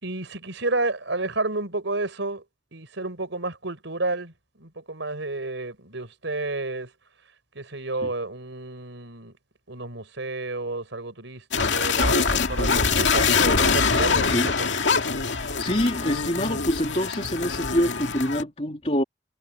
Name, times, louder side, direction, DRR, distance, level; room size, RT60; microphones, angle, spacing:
voice 1, 0.0-2.4 2.7-6.9 7.5-9.3 9.7-14.4, right 2 dB, 85° right, 5.0 m, -31 dB
sound 1, 11.5-18.4, left 4 dB, 80° left, 2.2 m, -23 dB
voice 2, 15.3-19.0, equal, 35° left, 3.1 m, -26 dB
head